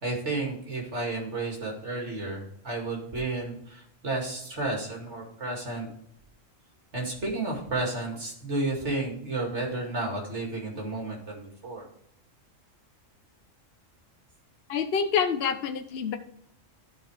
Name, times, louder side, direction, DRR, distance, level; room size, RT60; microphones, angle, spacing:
voice 1, 0.0-5.9 6.9-11.9, right 2 dB, 60° right, 0 dB, 2.7 m, -32 dB
voice 2, 14.7-16.2, left 6 dB, 55° left, 7 dB, 0.9 m, -27 dB
12.5 x 4.6 x 4.8 m, 0.67 s
omnidirectional pair, 1.3 m